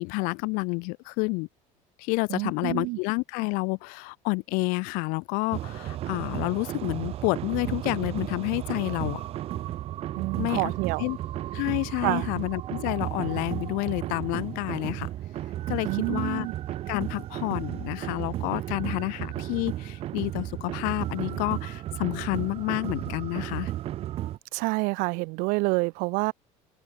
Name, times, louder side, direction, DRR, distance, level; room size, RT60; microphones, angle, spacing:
voice 1, 0.0-1.5 2.0-9.3 10.4-10.7 11.0-11.2 11.5-15.1 15.7-16.5 16.9-23.7, left 30 dB, 80° left, 0.6 m, -29 dB
voice 2, 2.3-3.0 10.2-11.1 12.0-12.3 15.8-16.6 24.5-26.3, right 28 dB, 75° right, 0.6 m, -28 dB
sound 1, 5.5-24.4, right 13 dB, 45° right, 0.9 m, -34 dB
open air
cardioid pair, 155°, 14 cm